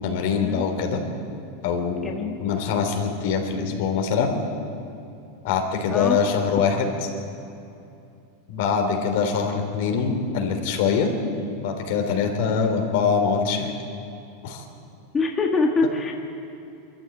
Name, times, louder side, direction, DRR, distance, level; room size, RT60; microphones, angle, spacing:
voice 1, 0.0-1.0 1.6-2.1 2.4-4.3 5.4-6.9 8.5-11.1 11.6-13.7 14.4-14.6, left 6 dB, 65° left, 4 dB, 3.3 m, -23 dB
voice 2, 2.0-2.4 5.9-6.2 15.1-16.1, left 3 dB, 15° left, 2 dB, 1.4 m, -24 dB
23.0 x 14.0 x 9.2 m, 2.7 s
supercardioid pair, 145°, 0 cm